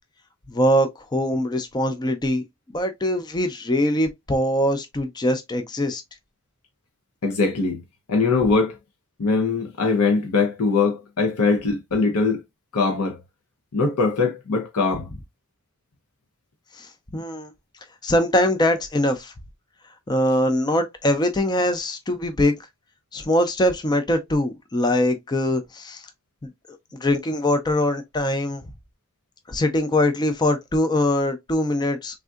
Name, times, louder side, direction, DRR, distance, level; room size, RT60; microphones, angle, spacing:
voice 1, 0.5-6.0 16.7-17.5 18.0-19.3 20.1-22.5 23.1-26.0 27.0-28.6 29.5-32.2, left 1 dB, 20° left, 0.4 m, -22 dB
voice 2, 7.2-7.8 8.1-8.8 9.2-12.4 12.7-13.2 13.7-15.1, left 4 dB, 80° left, 0.7 m, -21 dB
3.4 x 2.6 x 2.3 m
head